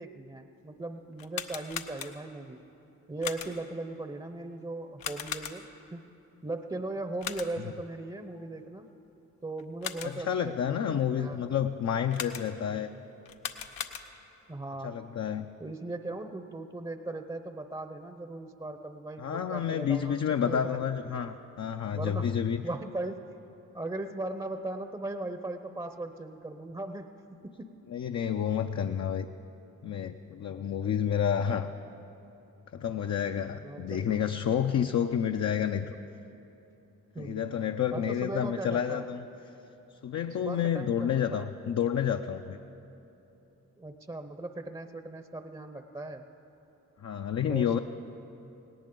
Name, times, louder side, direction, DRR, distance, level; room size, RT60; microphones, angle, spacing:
voice 1, 0.0-2.6 3.1-5.6 5.9-6.1 6.4-8.9 9.4-11.4 14.5-15.0 15.6-20.2 20.4-20.8 21.9-22.3 22.6-23.4 23.7-27.7 33.6-34.1 37.1-37.5 37.9-39.1 40.4-41.5 43.8-46.3 47.4-47.8, right 2 dB, 15° right, 8 dB, 0.7 m, -38 dB
sound 1, 1.1-2.4 3.2-3.8 5.0-5.9 7.2-7.8 9.6-10.3 12.1-12.7 13.2-14.4, left 8 dB, 85° left, 0.7 m, -39 dB
voice 2, 10.0-12.9 14.8-15.5 19.2-22.6 27.9-29.3 29.8-31.7 32.7-35.9 37.2-39.2 40.0-42.6 47.0-47.8, left 8 dB, 50° left, 5 dB, 0.6 m, -29 dB
18.0 x 18.0 x 3.8 m, 3.0 s
supercardioid pair, 55°, 34 cm